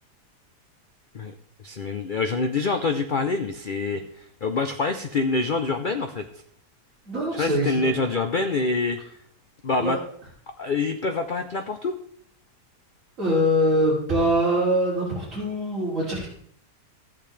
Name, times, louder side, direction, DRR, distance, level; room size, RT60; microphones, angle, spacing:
voice 1, 1.6-4.0 4.4-6.2 7.4-9.0 9.6-10.0 10.6-11.9, left 3 dB, 85° left, 7 dB, 0.4 m, -25 dB
voice 2, 7.1-8.0 9.8-10.0 13.2-16.3, equal, 50° right, -8 dB, 3.3 m, -23 dB
13.5 x 8.5 x 3.3 m, 0.65 s
omnidirectional pair, 1.7 m